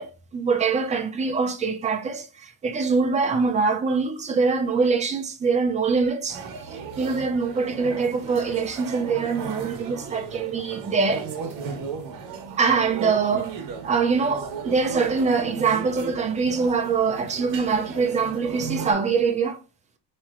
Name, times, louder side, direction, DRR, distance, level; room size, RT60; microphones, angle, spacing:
voice 1, 0.0-6.4 7.0-11.3 12.6-13.5 13.8-19.6, right 5 dB, 15° right, 0.4 m, -24 dB
sound 1, 6.3-18.9, right 5 dB, 45° right, 1.2 m, -36 dB
4.2 x 3.1 x 3.6 m
cardioid pair, 170°, 45 cm